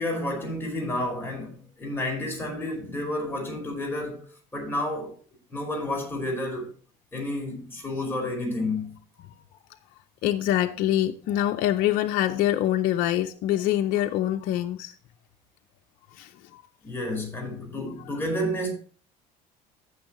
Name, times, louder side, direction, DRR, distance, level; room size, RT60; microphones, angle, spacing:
voice 1, 0.0-4.3 4.5-5.2 5.5-6.7 7.1-8.9 16.8-18.7, left 1 dB, 15° left, 5.0 m, -30 dB
voice 2, 10.2-15.0 16.1-16.6, left 12 dB, 65° left, 0.6 m, -25 dB
15.5 x 6.4 x 3.1 m
supercardioid pair, 100°, 16 cm